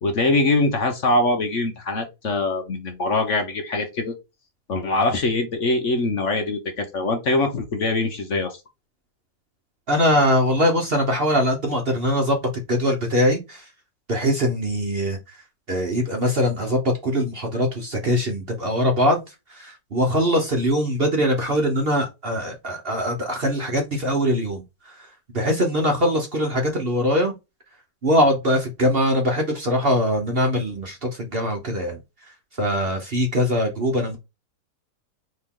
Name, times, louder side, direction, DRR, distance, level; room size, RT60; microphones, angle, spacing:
voice 1, 0.0-4.1 4.7-8.6, left 2 dB, 55° left, 5 dB, 1.1 m, -23 dB
voice 2, 9.9-12.4 12.7-13.7 14.1-25.1 25.3-27.3 28.0-34.2, equal, 45° right, 2 dB, 0.9 m, -22 dB
4.4 x 3.0 x 3.6 m, 0.24 s
omnidirectional pair, 1.8 m